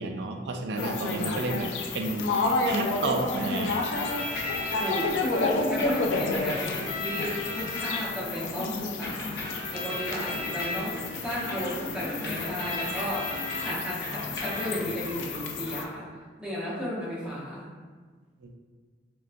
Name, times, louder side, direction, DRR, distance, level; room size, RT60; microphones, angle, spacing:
voice 1, 0.0-3.8 18.4-18.5, right 2 dB, 65° right, 4 dB, 0.3 m, -31 dB
sound 1, 0.8-15.8, left 3 dB, 85° left, 0.3 m, -31 dB
voice 2, 1.1-1.7 4.8-16.1 16.4-17.7, equal, 5° right, -8 dB, 0.7 m, -34 dB
sound 2, 3.6-5.1 5.8-8.4 9.0-13.7 14.0-14.9, left 2 dB, 60° left, 0.7 m, -36 dB
3.6 x 2.2 x 2.5 m, 1.5 s
head